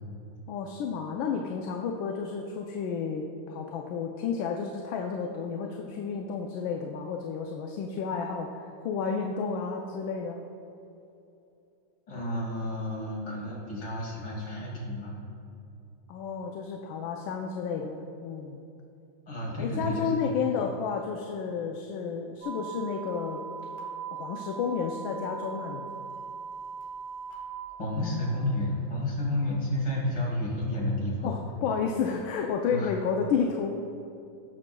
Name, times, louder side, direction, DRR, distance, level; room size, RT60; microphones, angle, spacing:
voice 1, 0.5-10.4 16.1-18.6 19.6-23.4 24.1-25.9 31.2-33.7, left 6 dB, 75° left, 2 dB, 1.3 m, -31 dB
voice 2, 12.1-15.2 19.3-20.2 27.8-31.3 32.7-32.9, left 1 dB, 55° left, -5 dB, 2.9 m, -31 dB
sound 1, 22.4-28.7, right 6 dB, 15° right, 1.9 m, -40 dB
18.0 x 6.2 x 2.2 m, 2.7 s
omnidirectional pair, 2.2 m